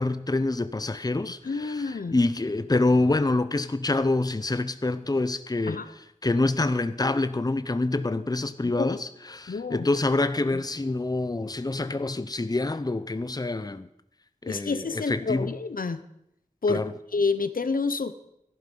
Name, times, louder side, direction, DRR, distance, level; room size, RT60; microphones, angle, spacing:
voice 1, 0.0-5.8 6.2-13.9 14.4-15.5 16.7-16.9, left 2 dB, 30° left, 13 dB, 0.7 m, -26 dB
voice 2, 1.4-2.2 5.7-5.9 8.6-9.0 9.5-9.9 10.5-10.6 14.4-16.0 16.6-16.8 17.1-18.1, left 4 dB, 85° left, 12 dB, 0.8 m, -28 dB
14.0 x 11.5 x 5.4 m, 0.79 s
wide cardioid pair, 60°, 14 cm